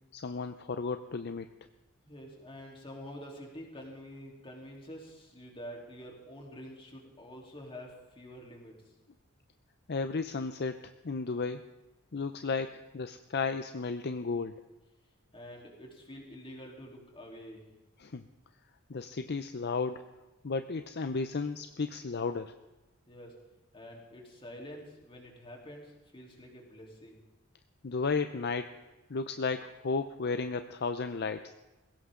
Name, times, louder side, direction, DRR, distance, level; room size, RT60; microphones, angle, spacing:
voice 1, 0.1-1.5 9.9-11.6 12.1-14.6 18.0-18.2 18.9-20.1 20.4-22.5 27.8-28.7 29.1-31.5, left 4 dB, 50° left, 9 dB, 0.6 m, -34 dB
voice 2, 2.0-8.9 15.3-17.7 23.1-23.4 23.7-27.2, equal, 25° left, -1 dB, 3.5 m, -47 dB
20.5 x 17.0 x 3.8 m, 1.1 s
head